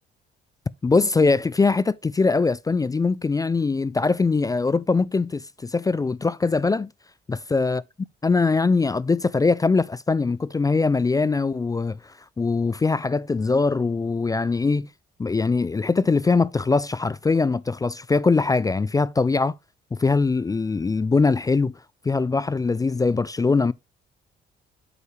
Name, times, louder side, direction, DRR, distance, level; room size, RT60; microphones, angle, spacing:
voice 1, 0.8-6.9 7.3-7.8 8.2-14.9 15.2-19.5 19.9-21.7 22.0-23.7, left 4 dB, 20° left, 0.3 m, -22 dB
8.1 x 5.4 x 3.2 m
cardioid pair, 90°, 20 cm